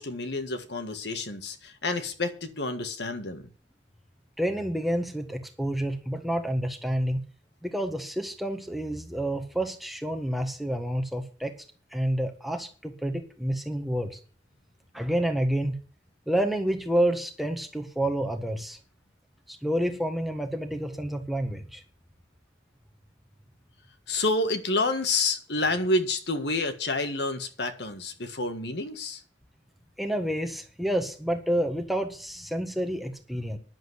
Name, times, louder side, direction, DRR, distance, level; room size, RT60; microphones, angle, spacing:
voice 1, 0.0-3.5 24.1-29.2, left 2 dB, 60° left, 1.6 m, -29 dB
voice 2, 4.4-7.2 7.6-11.5 11.9-14.2 14.9-15.7 16.3-18.8 19.5-21.8 30.0-33.6, right 1 dB, ahead, 1.4 m, -29 dB
10.5 x 7.7 x 8.0 m
head